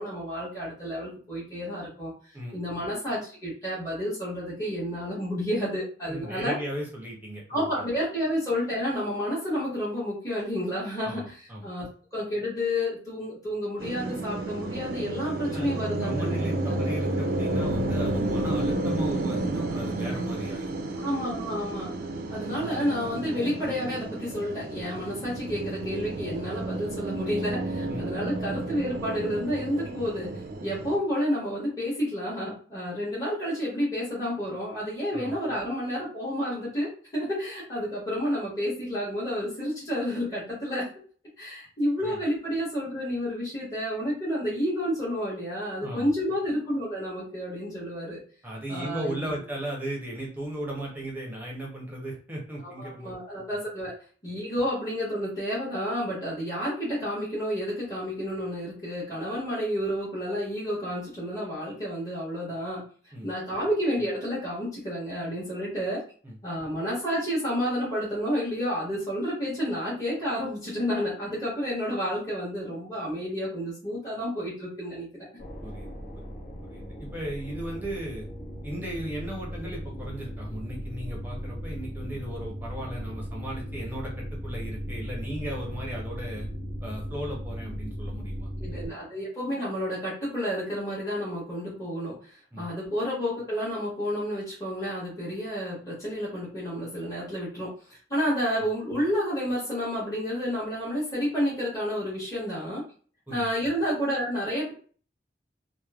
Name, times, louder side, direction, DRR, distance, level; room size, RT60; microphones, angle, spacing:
voice 1, 0.0-2.1 2.5-6.6 7.5-16.7 21.0-21.9 22.3-40.9 41.4-48.2 48.7-49.4 52.6-53.9 54.2-62.8 63.2-66.0 66.4-75.1 88.6-102.8 103.3-104.7, equal, 20° left, -9 dB, 1.1 m, -30 dB
voice 2, 6.0-7.9 11.0-11.7 15.4-15.7 16.0-20.7 21.0-21.2 27.9-28.1 35.1-35.3 42.0-42.2 45.8-46.1 48.4-53.1 53.5-53.6 63.1-63.3 66.2-66.4 75.6-75.9 76.2-76.3 76.7-78.3 78.6-86.5 86.8-88.8 92.5-92.7 103.3-103.5, right 1 dB, 10° right, -2 dB, 0.6 m, -36 dB
sound 1, 13.8-31.0, right 2 dB, 50° right, 0.3 m, -31 dB
sound 2, 75.4-88.9, equal, 60° left, 0.8 m, -37 dB
3.0 x 2.0 x 2.3 m, 0.42 s
head